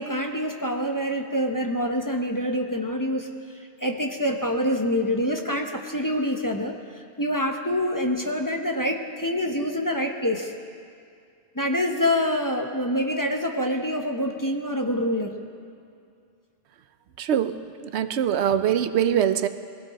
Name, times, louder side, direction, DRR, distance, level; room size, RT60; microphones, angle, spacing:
voice 1, 0.0-3.3 3.8-6.8 7.2-10.5 11.5-15.4, equal, 20° left, 3 dB, 0.9 m, -26 dB
voice 2, 17.2-19.5, right 9 dB, 80° right, 11 dB, 0.9 m, -23 dB
21.5 x 16.0 x 4.2 m, 2.3 s
omnidirectional pair, 1.1 m